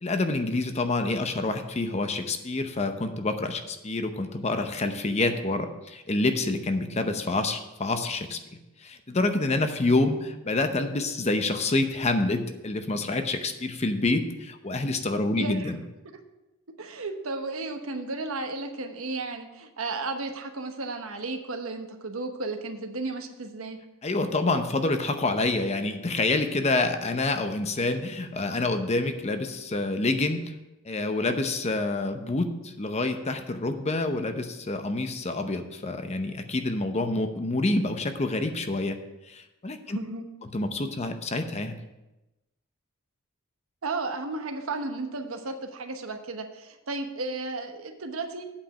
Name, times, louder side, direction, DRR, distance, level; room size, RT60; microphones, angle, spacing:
voice 1, 0.0-8.4 8.8-15.8 24.0-30.5 30.8-39.0 39.3-40.0 40.5-41.8, left 2 dB, 30° left, 7 dB, 0.7 m, -27 dB
voice 2, 15.3-15.7 16.7-23.8 39.9-40.3 43.8-48.4, right 3 dB, 85° right, 5 dB, 1.1 m, -34 dB
8.6 x 5.2 x 7.2 m, 1.0 s
head